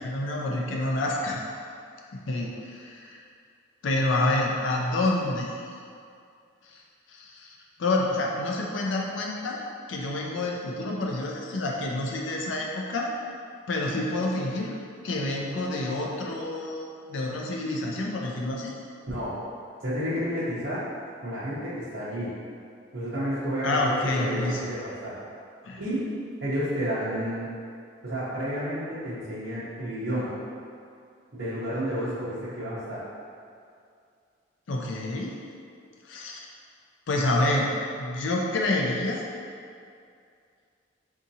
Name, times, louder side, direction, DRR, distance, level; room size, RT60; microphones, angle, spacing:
voice 1, 0.0-1.4 2.1-3.2 3.8-5.6 6.7-6.8 7.1-9.6 9.9-13.1 13.7-14.7 15.0-18.7 23.6-24.6 25.6-25.8 34.7-35.4 36.0-36.4 37.1-39.3, left 2 dB, 80° left, -1 dB, 0.5 m, -28 dB
voice 2, 19.8-20.8 21.2-22.3 22.9-25.2 25.8-26.0 26.4-27.5 28.0-30.3 31.3-33.0, equal, 75° right, -13 dB, 0.8 m, -30 dB
3.7 x 2.8 x 2.7 m, 2.3 s
head